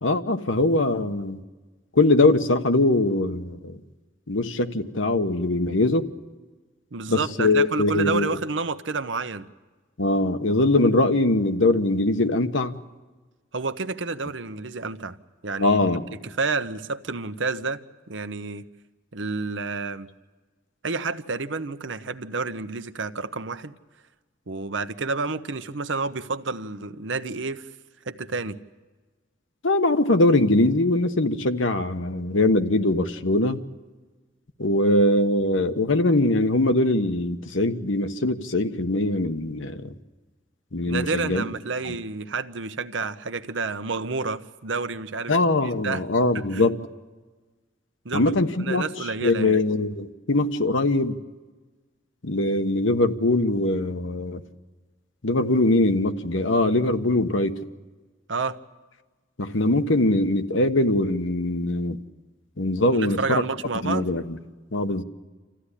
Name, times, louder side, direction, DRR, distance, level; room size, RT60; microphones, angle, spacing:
voice 1, 0.0-1.4 1.9-3.8 4.3-6.1 7.1-8.3 10.0-12.8 15.6-16.0 29.6-33.6 34.6-39.9 40.7-41.4 41.8-41.9 45.3-46.7 48.1-48.8 49.2-51.2 52.2-54.4 55.2-57.6 59.4-62.0 62.6-63.4 63.8-64.4 64.7-65.0, left 2 dB, 80° left, 8 dB, 1.2 m, -22 dB
voice 2, 6.9-9.5 13.5-15.2 15.4-15.8 16.1-18.6 19.1-20.1 20.8-23.7 24.5-27.7 28.1-28.6 40.9-45.3 45.6-46.0 46.3-46.7 48.0-48.3 48.6-49.6 58.3-58.6 62.9-64.1, right 4 dB, 75° right, 11 dB, 0.9 m, -29 dB
27.5 x 15.0 x 10.0 m, 1.3 s
head